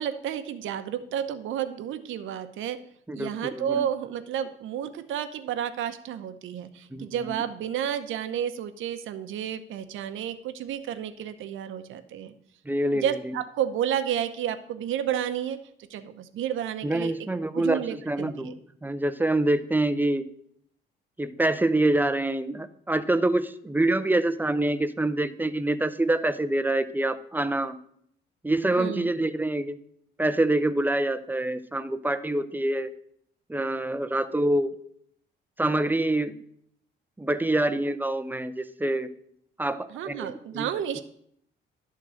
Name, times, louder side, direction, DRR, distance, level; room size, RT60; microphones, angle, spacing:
voice 1, 0.0-2.8 3.1-12.3 12.9-15.6 15.9-17.1 17.5-18.5 28.8-29.1 39.9-41.0, right 9 dB, 80° right, 10 dB, 0.8 m, -31 dB
voice 2, 3.1-3.8 6.9-7.4 12.7-13.2 16.8-18.5 18.8-20.3 21.2-27.8 28.4-29.8 30.2-32.9 33.5-34.7 35.6-36.4 37.2-39.1 39.6-40.7, right 1 dB, 10° right, 12 dB, 0.6 m, -26 dB
11.0 x 3.8 x 7.5 m, 0.68 s
cardioid pair, 90°, 20 cm